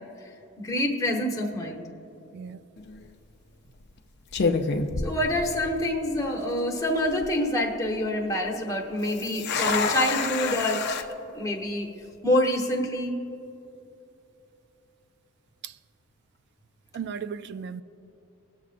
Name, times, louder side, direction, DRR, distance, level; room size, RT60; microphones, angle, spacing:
voice 1, 0.6-1.9 5.0-10.9 11.3-11.9 12.2-13.1, left 1 dB, 15° left, 1.1 m, -26 dB
voice 2, 2.3-2.6 15.6-15.7 16.9-17.8, right 6 dB, 55° right, 0.3 m, -35 dB
sound 1, 2.8-3.1 3.8-4.0 4.3-5.9 6.2-6.3 6.9-7.3 9.0-11.0, left 4 dB, 55° left, 0.6 m, -28 dB
21.0 x 7.2 x 2.5 m
head